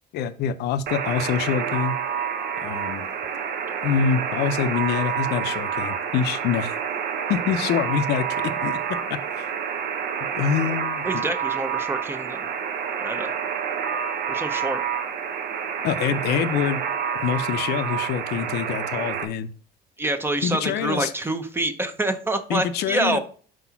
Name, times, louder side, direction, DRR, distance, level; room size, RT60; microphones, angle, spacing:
voice 1, 0.1-1.9 2.6-3.1 3.8-6.7 7.3-9.5 10.4-11.2 15.8-16.9 17.2-19.5 20.4-21.1 22.5-23.2, left 8 dB, 70° left, 12 dB, 0.5 m, -25 dB
Alarm, 0.9-19.2, right 7 dB, 65° right, 0.8 m, -28 dB
voice 2, 11.0-12.5 13.0-13.3 14.3-14.8 20.0-23.2, right 2 dB, 15° right, 9 dB, 0.6 m, -26 dB
4.7 x 4.2 x 5.7 m, 0.42 s
cardioid pair, 145°, 17 cm